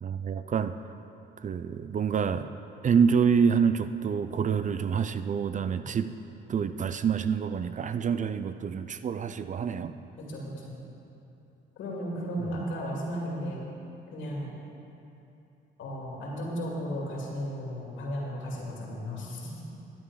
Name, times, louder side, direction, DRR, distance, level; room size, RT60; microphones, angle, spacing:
voice 1, 0.0-0.7 1.4-2.5 2.8-6.1 6.5-9.9, right 6 dB, 40° right, 11 dB, 0.4 m, -27 dB
voice 2, 10.2-10.8 11.8-13.6 14.1-14.5 15.8-19.6, equal, 80° left, -3 dB, 2.4 m, -35 dB
12.0 x 8.4 x 4.8 m, 2.8 s
cardioid pair, 90°, 20 cm